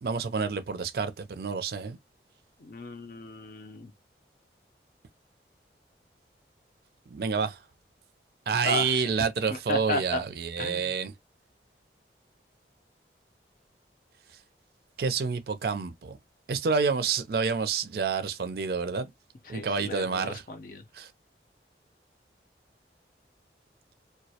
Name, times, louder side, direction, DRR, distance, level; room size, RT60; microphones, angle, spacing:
voice 1, 0.0-2.0 7.1-7.6 8.5-11.1 15.0-16.2 16.5-19.1 19.5-20.4 20.9-21.1, right 5 dB, 60° right, 0.4 m, -28 dB
voice 2, 2.6-3.9 8.6-9.1 9.5-10.2 10.6-10.9 19.5-20.9, left 2 dB, 50° left, 0.5 m, -34 dB
2.2 x 2.0 x 2.7 m
head